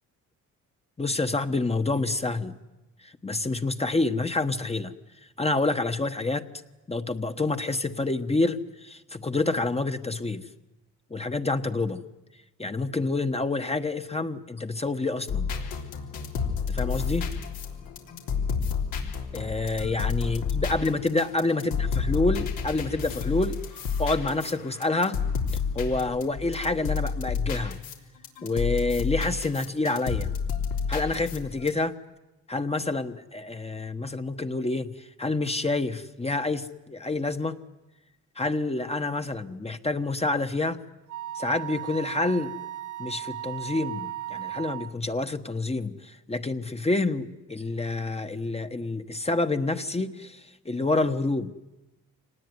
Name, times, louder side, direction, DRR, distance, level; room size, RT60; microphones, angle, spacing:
voice 1, 1.0-2.6 3.0-4.9 5.4-6.5 6.9-10.5 11.1-12.0 12.6-15.5 16.7-17.3 19.3-23.6 24.0-25.2 25.7-27.8 28.4-30.3 30.9-32.0 32.5-37.6 38.4-40.8 41.3-42.5 43.0-51.5, left 2 dB, 20° left, 8 dB, 1.3 m, -28 dB
sound 1, 15.3-28.0 28.2-31.7, left 5 dB, 85° left, 3.5 m, -30 dB
Wind instrument woodwind instrument, 41.1-44.9, right 12 dB, 60° right, 1.3 m, -36 dB
25.5 x 19.0 x 9.6 m, 1.0 s
cardioid pair, 75°, 34 cm